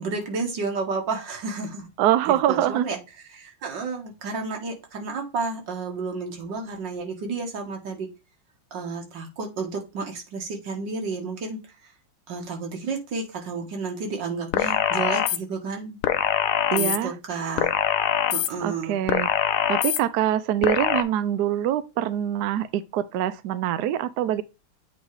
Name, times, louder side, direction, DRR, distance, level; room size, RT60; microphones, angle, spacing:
voice 1, 0.0-1.9 2.3-3.0 3.3-8.1 8.7-11.6 12.3-16.0 16.7-17.7 18.3-19.0, right 4 dB, 60° right, 2.1 m, -31 dB
voice 2, 2.0-2.9 16.7-17.1 18.6-19.3 19.7-24.4, right 11 dB, 90° right, 0.8 m, -24 dB
sound 1, 14.5-15.4 16.0-17.0 17.6-18.5 19.1-20.0 20.6-21.0, left 11 dB, 85° left, 1.5 m, -23 dB
8.1 x 3.0 x 4.7 m
omnidirectional pair, 2.4 m